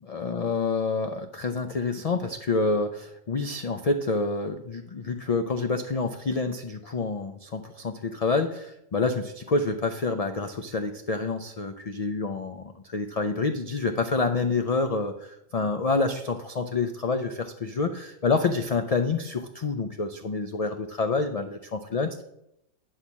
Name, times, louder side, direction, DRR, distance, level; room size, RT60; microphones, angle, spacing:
voice 1, 0.0-22.2, left 3 dB, 60° left, 7 dB, 0.3 m, -28 dB
10.0 x 4.0 x 7.2 m, 0.80 s
omnidirectional pair, 1.4 m